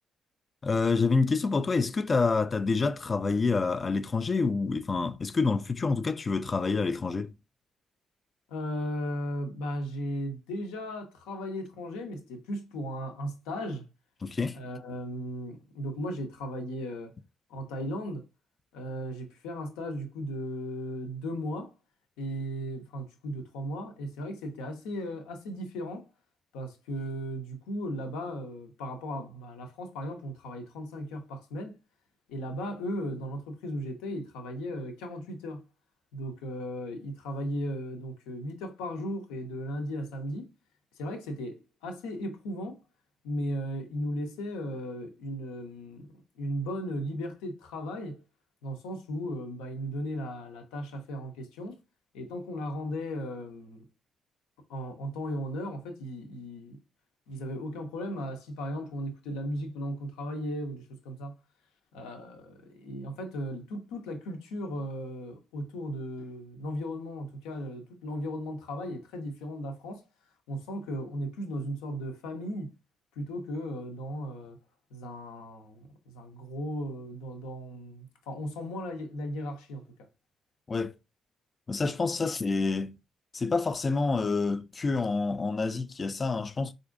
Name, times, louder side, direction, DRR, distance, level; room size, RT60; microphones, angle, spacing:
voice 1, 0.6-7.3 14.2-14.6 80.7-80.9 81.7-82.9 83.3-86.7, left 4 dB, 40° left, 0.3 m, -27 dB
voice 2, 8.5-13.9 14.5-17.2 17.5-18.3 18.7-21.7 22.2-26.1 26.5-31.8 32.3-35.7 36.1-40.5 41.0-42.8 43.2-46.1 46.4-48.2 48.6-51.8 52.1-53.9 54.7-56.8 57.3-61.3 61.9-70.0 70.5-72.7 73.2-74.6 74.9-80.1, equal, 75° left, 0.6 m, -36 dB
4.2 x 2.5 x 2.5 m
figure-of-eight pair, 40°, 0 cm